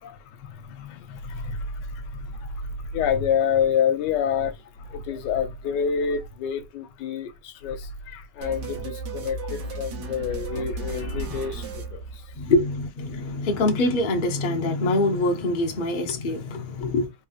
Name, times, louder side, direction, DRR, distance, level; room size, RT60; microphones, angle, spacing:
voice 1, 0.0-12.2, left 7 dB, 80° left, 1.2 m, -28 dB
sound 1, 8.4-12.7, right 3 dB, 75° right, 1.4 m, -35 dB
voice 2, 12.4-17.1, left 2 dB, 45° left, 0.6 m, -24 dB
3.5 x 2.8 x 2.4 m
omnidirectional pair, 1.9 m